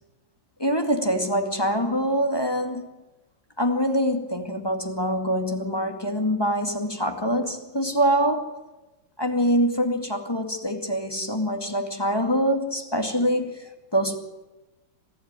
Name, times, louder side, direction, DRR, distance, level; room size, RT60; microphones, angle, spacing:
voice 1, 0.6-2.9 3.6-8.5 9.2-14.2, equal, 10° left, 2.1 m, -24 dB
27.0 x 16.0 x 9.1 m
omnidirectional pair, 2.1 m